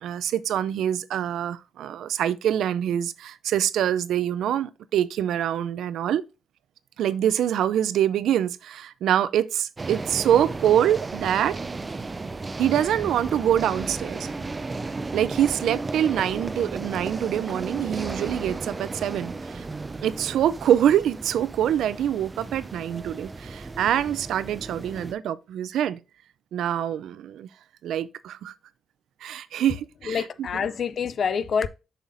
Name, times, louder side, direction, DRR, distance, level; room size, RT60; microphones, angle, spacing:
voice 1, 0.0-6.2 7.0-11.6 12.6-14.3 15.1-19.6 20.0-26.0 26.5-27.5 27.8-28.5 29.2-30.2, right 10 dB, 85° right, 0.4 m, -25 dB
sound 1, 9.8-25.1, right 3 dB, 25° right, 0.4 m, -34 dB
voice 2, 30.0-31.7, left 6 dB, 55° left, 0.5 m, -26 dB
7.2 x 5.7 x 2.6 m
cardioid pair, 110°, 0 cm